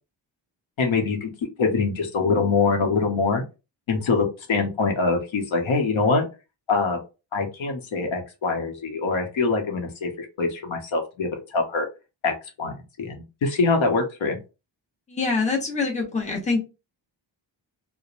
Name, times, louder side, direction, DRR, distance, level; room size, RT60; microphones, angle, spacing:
voice 1, 0.8-1.3 1.6-3.4 3.9-6.2 6.7-7.0 7.3-11.9 12.2-14.4, left 4 dB, 75° left, 3 dB, 0.9 m, -24 dB
voice 2, 15.1-16.6, left 4 dB, 15° left, -1 dB, 0.7 m, -25 dB
3.0 x 2.1 x 2.4 m, 0.28 s
wide cardioid pair, 165°, 47 cm